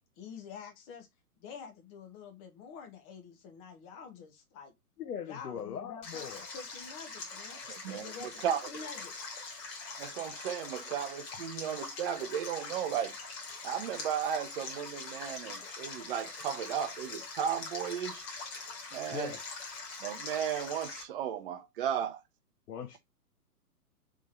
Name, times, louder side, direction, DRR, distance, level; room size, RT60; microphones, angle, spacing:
voice 1, 0.2-1.1 1.4-4.7 5.3-7.6 7.9-8.3 8.7-9.1 11.3-11.4, left 6 dB, 15° left, 0.6 m, -47 dB
voice 2, 5.0-6.5 19.1-19.4 22.7-23.0, left 8 dB, 75° left, 0.9 m, -40 dB
Stream, 6.0-21.0, left 4 dB, 40° left, 1.9 m, -43 dB
voice 3, 7.7-8.6 10.0-13.2 13.6-18.2 18.9-19.3 20.0-22.2, right 9 dB, 35° right, 0.6 m, -35 dB
3.6 x 3.5 x 3.1 m
hypercardioid pair, 135°, 47 cm